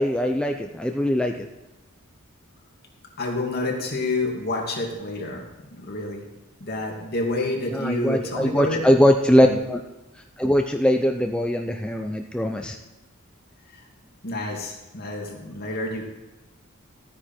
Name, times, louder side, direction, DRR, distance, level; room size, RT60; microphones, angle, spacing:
voice 1, 0.0-1.5 7.7-9.8 10.4-12.8, equal, 5° left, 3 dB, 0.6 m, -21 dB
voice 2, 3.2-6.3 6.6-9.0 9.3-9.6 13.7-13.8 14.2-16.0, left 2 dB, 50° left, 0 dB, 2.5 m, -29 dB
14.0 x 9.4 x 4.4 m, 1.0 s
head